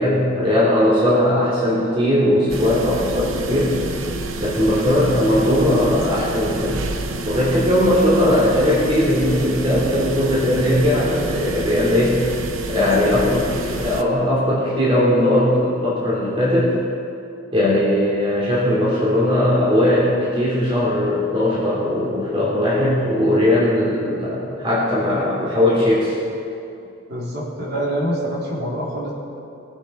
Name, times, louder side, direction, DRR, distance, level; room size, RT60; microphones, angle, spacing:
voice 1, 0.0-3.8 4.4-6.8 7.2-12.3 12.7-16.7 17.5-26.2, left 1 dB, 25° right, -7 dB, 3.0 m, -19 dB
sound 1, 2.5-14.0, right 2 dB, 70° right, 0.8 m, -28 dB
voice 2, 27.1-29.1, right 1 dB, 50° right, -4 dB, 3.1 m, -25 dB
22.0 x 8.7 x 4.3 m, 2.6 s
head